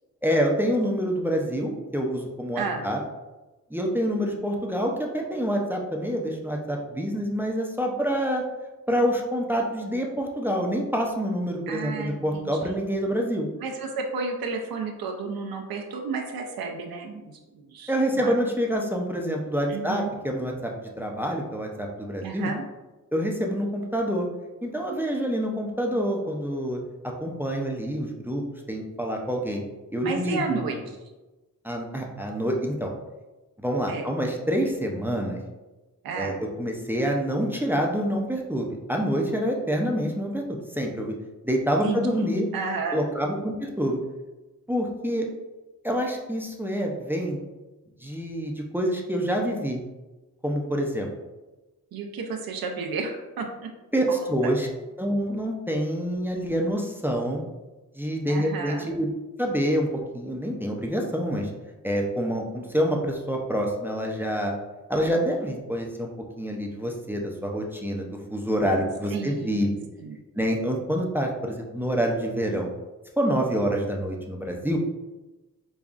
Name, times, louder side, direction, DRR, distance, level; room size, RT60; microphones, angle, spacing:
voice 1, 0.2-3.0 3.7-8.4 8.9-13.5 17.9-22.5 23.1-24.3 24.6-26.8 27.2-29.6 29.9-30.7 31.6-32.9 33.6-35.4 36.2-41.1 41.4-42.4 42.9-44.0 44.7-45.3 45.8-47.4 48.0-49.8 50.4-51.1 53.9-54.7 55.0-57.4 58.0-59.1 59.4-59.9 60.1-61.5 61.8-64.5 64.9-66.1 66.4-69.7 70.4-72.7 73.2-74.8, equal, 5° right, 0 dB, 0.4 m, -27 dB
voice 2, 11.7-12.8 13.6-18.3 19.7-20.1 22.2-22.6 30.0-31.0 33.9-34.1 36.0-36.4 41.8-43.0 51.9-53.7 54.1-54.3 58.3-58.9 69.1-70.2, right 4 dB, 80° right, 2 dB, 0.6 m, -32 dB
5.2 x 2.3 x 2.4 m, 1.1 s
wide cardioid pair, 90°, 35 cm